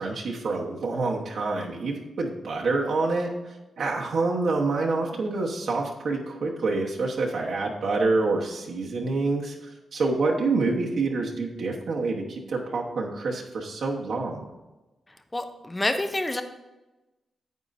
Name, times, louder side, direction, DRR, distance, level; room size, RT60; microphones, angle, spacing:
voice 1, 0.0-14.5, right 3 dB, 60° right, -1 dB, 1.1 m, -27 dB
voice 2, 15.3-16.4, left 1 dB, 10° left, 8 dB, 0.5 m, -27 dB
9.3 x 8.9 x 2.6 m, 1.0 s
wide cardioid pair, 165°, 0 cm